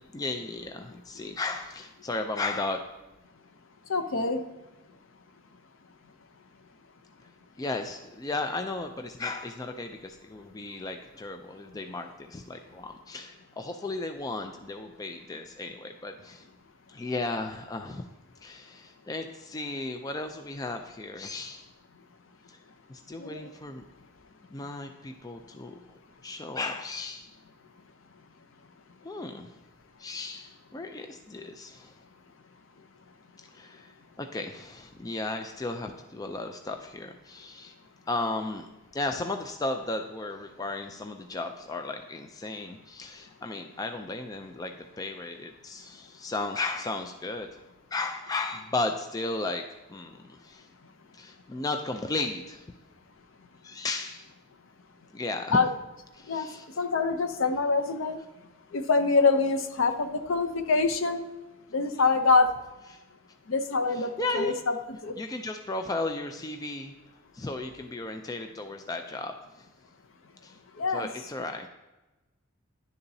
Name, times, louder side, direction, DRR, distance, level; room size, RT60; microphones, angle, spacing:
voice 1, 0.1-2.8 7.6-16.4 16.9-18.0 18.4-21.7 22.5-22.6 22.9-23.8 24.5-27.3 29.0-29.5 30.0-31.9 33.5-37.7 38.1-38.7 38.9-47.6 47.9-50.7 51.1-52.7 53.6-54.3 55.1-55.6 56.1-56.6 62.9-63.0 63.9-64.5 65.2-66.9 67.3-69.7 70.4-70.6 70.9-71.7, left 2 dB, 15° left, 5 dB, 0.3 m, -35 dB
voice 2, 3.9-4.4 23.2-23.5 55.5-55.7 56.3-56.5 56.8-58.2 58.7-61.2 61.7-62.5 63.5-64.8 65.0-65.2 70.7-71.1, left 4 dB, 60° left, 9 dB, 0.6 m, -25 dB
10.5 x 6.8 x 2.7 m, 1.1 s
head